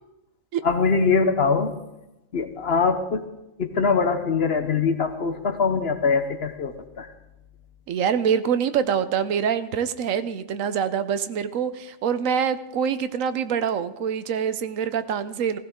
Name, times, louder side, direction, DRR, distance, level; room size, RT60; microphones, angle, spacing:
voice 1, 0.6-1.7 2.3-3.3 3.6-7.1, left 5 dB, 50° left, 9 dB, 1.1 m, -22 dB
voice 2, 7.9-15.6, right 7 dB, 75° right, 12 dB, 1.1 m, -25 dB
16.0 x 15.5 x 3.7 m, 0.94 s
omnidirectional pair, 1.4 m